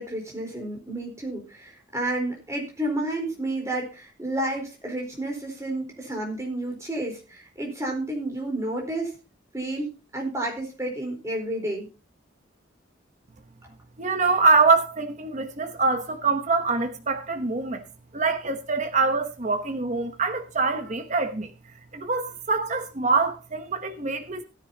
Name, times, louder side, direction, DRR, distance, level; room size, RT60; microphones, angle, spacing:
voice 1, 0.0-9.1 9.5-11.9, right 1 dB, 15° right, 4.2 m, -31 dB
voice 2, 14.0-17.8 18.1-21.5 21.9-24.4, right 4 dB, 35° right, 1.0 m, -24 dB
16.5 x 9.9 x 2.9 m
head